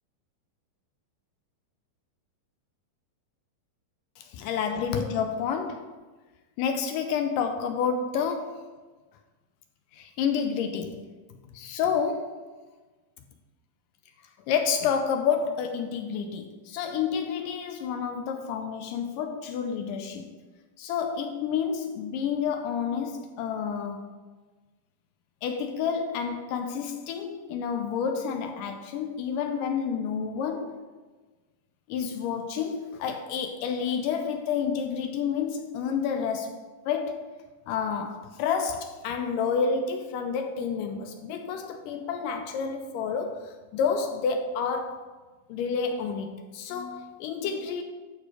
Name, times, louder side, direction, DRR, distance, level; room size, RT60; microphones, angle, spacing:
voice 1, 4.2-6.0 6.6-8.6 9.9-11.0 11.5-12.4 14.5-20.3 20.8-24.1 25.4-30.8 31.9-36.6 36.9-37.2 37.7-45.1 45.5-47.8, left 6 dB, 80° left, 6 dB, 2.0 m, -29 dB
11.5 x 4.3 x 4.8 m, 1.3 s
omnidirectional pair, 4.2 m